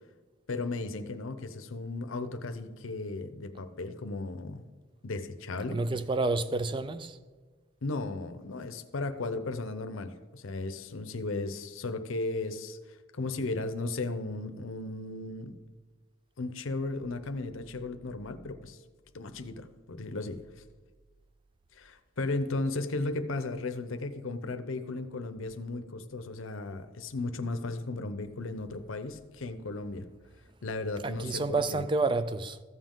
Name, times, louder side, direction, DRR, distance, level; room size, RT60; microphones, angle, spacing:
voice 1, 0.5-4.6 5.0-5.8 7.8-15.6 16.4-18.8 19.1-20.4 21.7-30.1 30.6-31.8, left 2 dB, 85° left, 0.7 m, -35 dB
voice 2, 5.7-7.2 31.0-32.6, right 3 dB, 25° right, 0.4 m, -29 dB
14.0 x 7.2 x 3.8 m
head